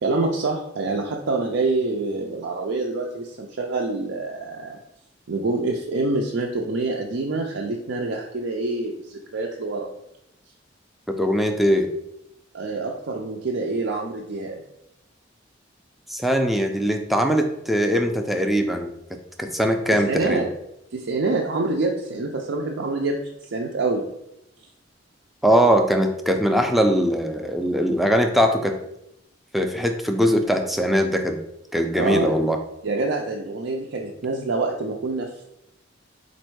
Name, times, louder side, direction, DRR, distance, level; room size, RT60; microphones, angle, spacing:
voice 1, 0.0-4.8 5.3-9.9 12.5-14.6 19.9-20.5 20.9-24.0 31.9-32.4 32.8-35.4, right 3 dB, 70° right, 0 dB, 0.5 m, -26 dB
voice 2, 11.1-11.9 16.1-18.9 19.4-20.4 25.4-28.8 29.5-31.4 31.7-32.6, equal, ahead, 4 dB, 0.4 m, -21 dB
4.2 x 2.6 x 4.5 m, 0.81 s
head